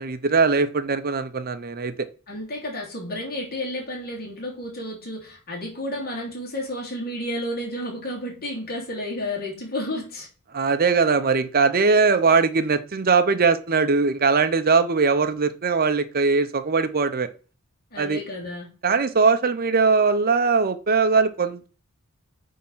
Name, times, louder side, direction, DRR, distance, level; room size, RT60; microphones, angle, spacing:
voice 1, 0.0-2.1 10.5-17.3 18.0-18.2 18.8-21.7, right 4 dB, 45° right, 11 dB, 0.8 m, -20 dB
voice 2, 2.3-10.3 17.9-18.7, left 1 dB, 45° left, -3 dB, 3.2 m, -31 dB
8.7 x 3.7 x 5.5 m, 0.35 s
head